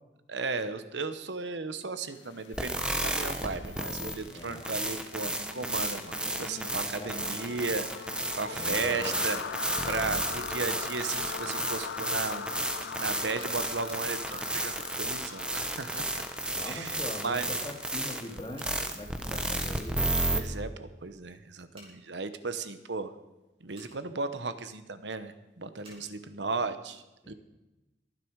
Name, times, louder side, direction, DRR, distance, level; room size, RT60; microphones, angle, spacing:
voice 1, 0.3-9.4 9.8-12.5 13.0-16.1 16.7-17.0 17.2-17.4 20.3-23.1 23.6-27.3, right 4 dB, 85° right, 11 dB, 1.0 m, -35 dB
sound 1, 2.2-20.0, left 6 dB, 90° left, 0.5 m, -42 dB
sound 2, 2.5-20.4, right 1 dB, 5° right, 1.0 m, -33 dB
voice 2, 4.3-4.7 6.8-7.5 8.5-9.2 16.5-20.0 27.2-27.3, left 1 dB, 25° left, 2 dB, 2.1 m, -41 dB
Scissors, 11.7-11.9 12.8-12.9 13.5-14.0 14.5-14.8 15.2-15.5 15.8-16.7 17.4-17.5 17.9-19.0 21.7-21.9 23.7-23.9 25.8-26.0, right 2 dB, 35° right, 5.2 m, -54 dB
22.5 x 10.0 x 4.7 m, 1.0 s
head